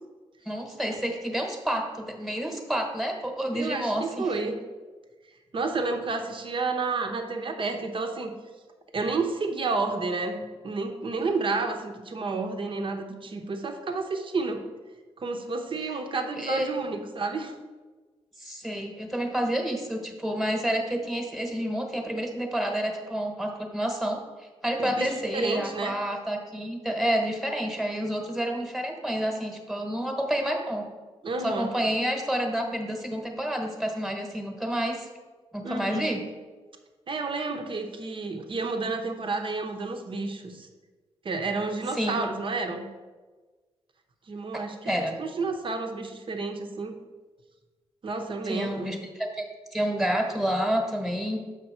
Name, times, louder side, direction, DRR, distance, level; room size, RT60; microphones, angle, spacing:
voice 1, 0.4-4.3 15.9-16.0 16.4-16.7 18.4-30.9 31.4-35.1 35.5-36.2 41.9-42.2 44.5-45.1 48.4-51.4, equal, ahead, 3 dB, 1.3 m, -29 dB
voice 2, 3.5-4.6 5.5-8.3 8.9-14.6 15.2-17.5 24.8-26.0 31.2-31.7 35.6-36.1 37.1-40.7 41.2-42.9 44.3-46.9 48.0-48.9, right 3 dB, 50° right, 4 dB, 0.9 m, -30 dB
6.7 x 5.2 x 4.4 m, 1.3 s
cardioid pair, 75°, 11 cm